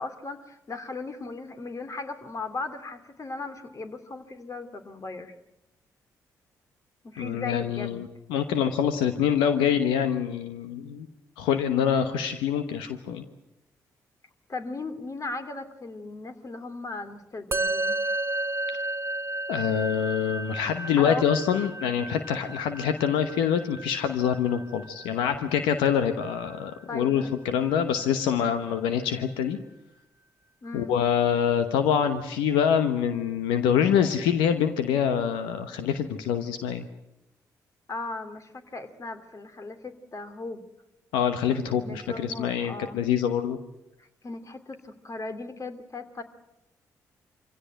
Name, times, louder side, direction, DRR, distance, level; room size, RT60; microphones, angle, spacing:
voice 1, 0.0-5.3 7.0-8.1 14.5-18.0 21.0-21.2 26.9-27.3 30.6-30.9 37.9-40.6 41.7-43.0 44.0-46.2, left 3 dB, 40° left, 8 dB, 2.6 m, -37 dB
voice 2, 7.2-11.1 11.4-13.3 18.7-18.8 19.5-29.6 30.7-36.9 41.1-43.6, left 8 dB, 85° left, 9 dB, 1.1 m, -25 dB
Musical instrument, 17.5-27.0, right 2 dB, 30° right, 1.1 m, -33 dB
25.0 x 16.5 x 9.1 m, 0.93 s
hypercardioid pair, 45°, 8 cm